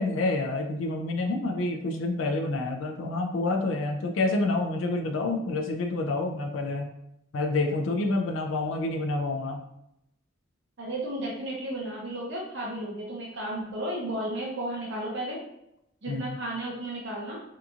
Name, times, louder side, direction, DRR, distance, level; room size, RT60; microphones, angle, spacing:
voice 1, 0.0-6.9 7.3-9.6 16.1-16.4, left 2 dB, 70° left, 3 dB, 0.4 m, -28 dB
voice 2, 10.8-15.4 16.0-17.4, right 1 dB, 60° right, -3 dB, 0.6 m, -33 dB
2.8 x 2.4 x 2.4 m, 0.80 s
head